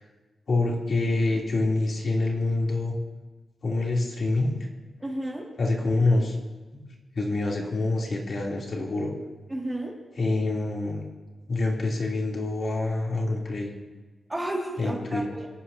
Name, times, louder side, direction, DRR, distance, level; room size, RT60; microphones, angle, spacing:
voice 1, 0.5-2.9 3.6-4.5 5.6-6.4 6.7-6.9 7.1-9.1 10.2-11.1 11.5-13.7 14.8-15.3, left 2 dB, 45° left, -2 dB, 3.3 m, -26 dB
voice 2, 5.0-5.5 9.5-10.0 14.3-15.5, right 1 dB, 15° right, -2 dB, 2.5 m, -32 dB
26.5 x 17.5 x 2.9 m, 1.3 s
wide cardioid pair, 165°, 0 cm